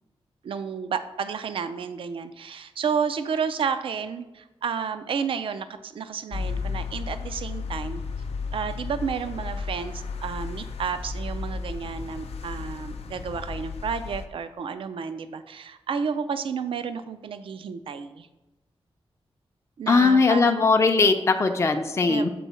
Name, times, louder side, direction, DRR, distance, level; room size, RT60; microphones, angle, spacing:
voice 1, 0.4-8.0 8.5-18.3 19.8-20.6 22.1-22.3, right 6 dB, 60° right, 11 dB, 0.4 m, -31 dB
sound 1, 6.3-14.2, left 4 dB, 85° left, 0.5 m, -34 dB
voice 2, 19.9-22.3, left 4 dB, 30° left, 5 dB, 0.5 m, -20 dB
6.9 x 4.5 x 4.2 m, 1.0 s
wide cardioid pair, 150°, 10 cm